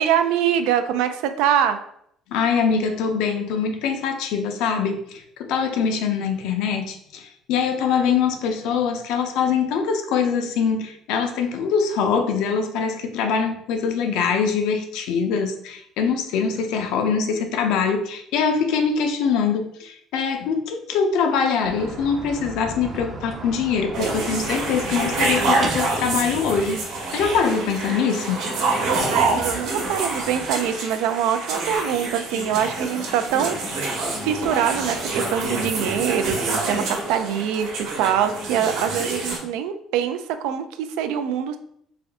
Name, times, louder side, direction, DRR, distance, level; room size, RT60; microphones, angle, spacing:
voice 1, 0.0-1.8 27.9-28.0 29.1-41.6, right 9 dB, 90° right, 9 dB, 0.4 m, -24 dB
voice 2, 2.3-26.8 27.1-28.4, left 6 dB, 75° left, 6 dB, 0.5 m, -23 dB
sound 1, 21.6-26.6, right 2 dB, 25° right, 0.5 m, -35 dB
sound 2, 23.9-39.4, right 3 dB, 70° right, 1.0 m, -26 dB
3.4 x 2.6 x 3.5 m, 0.71 s
cardioid pair, 160°, 0 cm